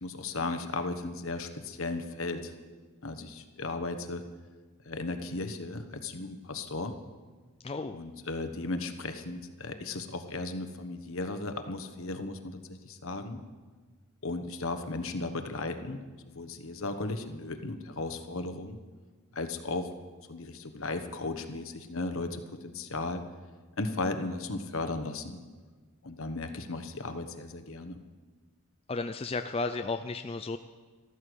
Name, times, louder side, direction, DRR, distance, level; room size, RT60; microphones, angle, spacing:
voice 1, 0.0-2.5 3.0-4.2 4.8-7.0 7.9-13.4 14.2-18.8 19.3-19.9 20.3-23.2 23.8-25.4 26.0-28.0, left 2 dB, 65° left, 8 dB, 1.2 m, -36 dB
voice 2, 7.6-8.0 28.9-30.6, left 3 dB, 25° left, 8 dB, 0.4 m, -33 dB
14.5 x 13.5 x 6.4 m, 1.4 s
head